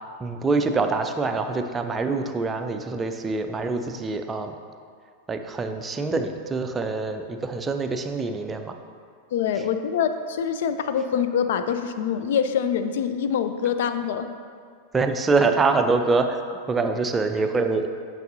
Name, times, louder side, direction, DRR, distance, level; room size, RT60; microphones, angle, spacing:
voice 1, 0.2-4.5 5.3-8.7 14.9-16.4 16.7-17.9, right 3 dB, 15° right, 6 dB, 0.4 m, -25 dB
voice 2, 9.3-14.3, left 7 dB, 55° left, 9 dB, 0.4 m, -25 dB
9.0 x 5.4 x 2.7 m, 2.1 s
figure-of-eight pair, 90°, 0 cm